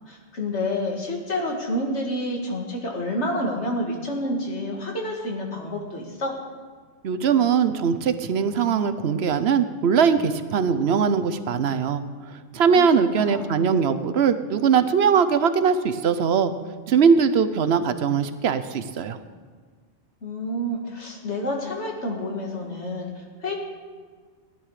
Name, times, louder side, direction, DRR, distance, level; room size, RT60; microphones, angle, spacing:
voice 1, 0.1-6.4 12.7-12.9 13.2-13.6 20.2-23.5, left 1 dB, 85° left, 0 dB, 2.4 m, -29 dB
voice 2, 7.0-16.5 16.9-19.2, right 6 dB, 70° right, 10 dB, 1.0 m, -21 dB
15.5 x 11.0 x 4.9 m, 1.5 s
omnidirectional pair, 1.1 m